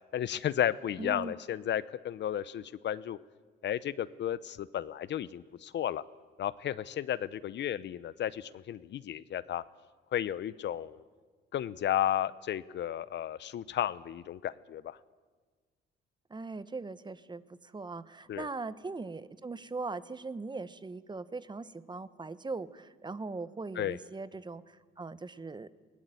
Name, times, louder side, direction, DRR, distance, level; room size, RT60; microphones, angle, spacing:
voice 1, 0.1-3.2 3.6-6.0 6.4-9.6 10.1-11.0 11.5-15.0 18.3-18.5 23.8-24.0, left 11 dB, 65° left, 17 dB, 0.7 m, -33 dB
voice 2, 1.0-1.3 16.3-25.7, right 3 dB, 20° right, 15 dB, 1.0 m, -40 dB
20.0 x 17.5 x 9.2 m, 1.4 s
cardioid pair, 90°, 20 cm